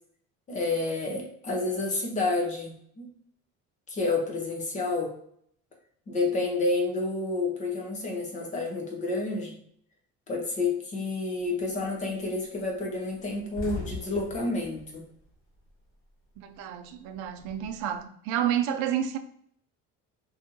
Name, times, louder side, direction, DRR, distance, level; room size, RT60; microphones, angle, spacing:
voice 1, 0.5-3.1 3.9-5.1 6.1-9.6 10.3-15.0, left 3 dB, 25° left, 0.6 m, -29 dB
sound 1, 11.4-11.8 12.2-12.3 12.6-12.7 13.0-16.0 16.3-18.0, left 2 dB, 40° left, 1.4 m, -41 dB
voice 2, 16.4-19.2, right 10 dB, 70° right, 0.4 m, -30 dB
2.7 x 2.7 x 3.6 m
cardioid pair, 180°, 31 cm